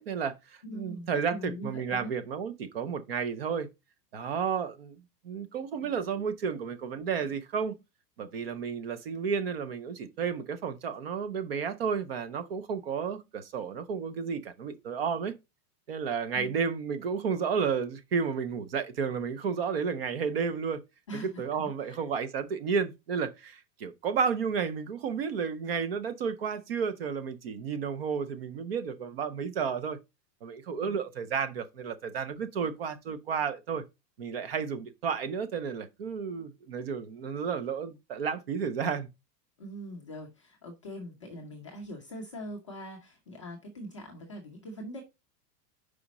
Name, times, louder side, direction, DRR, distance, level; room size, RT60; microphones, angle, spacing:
voice 1, 0.0-3.7 4.1-7.8 8.2-15.3 15.9-20.8 21.2-30.0 30.4-33.8 34.2-39.1, right 6 dB, 40° right, 0.6 m, -32 dB
voice 2, 0.6-2.1 16.3-16.7 21.1-22.0 39.6-45.0, equal, 20° left, 0.4 m, -42 dB
4.9 x 4.9 x 4.0 m
supercardioid pair, 180°, 49 cm